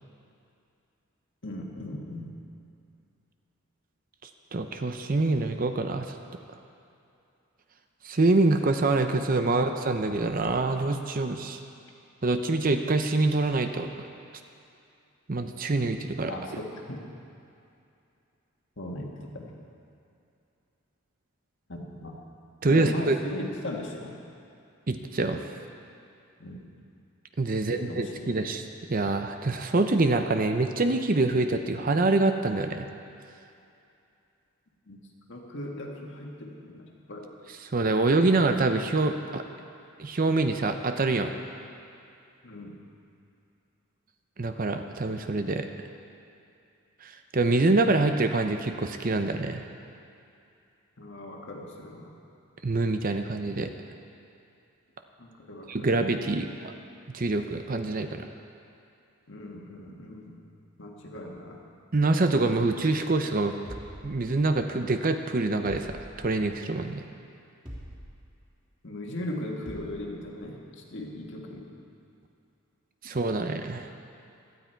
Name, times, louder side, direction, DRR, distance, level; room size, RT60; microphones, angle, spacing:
voice 1, 1.4-2.3 9.5-9.7 16.3-17.0 18.8-19.5 21.7-22.2 22.7-24.2 26.4-26.6 27.5-28.4 34.9-35.0 35.3-37.4 42.4-42.8 51.0-52.1 55.2-56.0 59.3-60.4 60.8-61.6 68.8-71.7 73.0-73.1, left 1 dB, 55° left, 0 dB, 1.7 m, -38 dB
voice 2, 4.2-6.1 8.0-11.6 12.2-14.1 15.3-16.3 22.6-23.2 24.9-25.4 27.4-28.6 28.9-32.9 37.6-39.4 40.0-41.3 44.4-45.7 47.0-49.6 52.6-53.7 55.7-56.7 57.1-58.3 61.9-63.5 64.0-67.0 73.0-73.9, right 2 dB, 40° right, 7 dB, 0.6 m, -25 dB
sound 1, 63.7-64.8 65.7-66.5 67.7-68.3 69.7-70.1, equal, 25° right, 3.2 m, -44 dB
17.5 x 12.5 x 4.5 m, 2.6 s
head